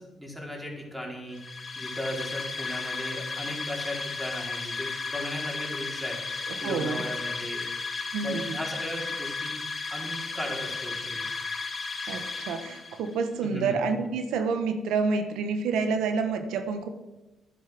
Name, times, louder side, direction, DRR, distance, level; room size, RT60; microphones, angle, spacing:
voice 1, 0.0-1.4 1.8-7.6 8.2-9.6 9.9-11.2 13.4-13.8, left 1 dB, 5° right, -1 dB, 4.2 m, -36 dB
sound 1, 1.3-13.1, left 4 dB, 40° left, 4.5 m, -34 dB
voice 2, 6.5-7.0 8.1-8.6 12.1-16.9, right 5 dB, 85° right, 8 dB, 1.1 m, -28 dB
12.5 x 10.5 x 6.0 m, 1.1 s
cardioid pair, 90°, 0 cm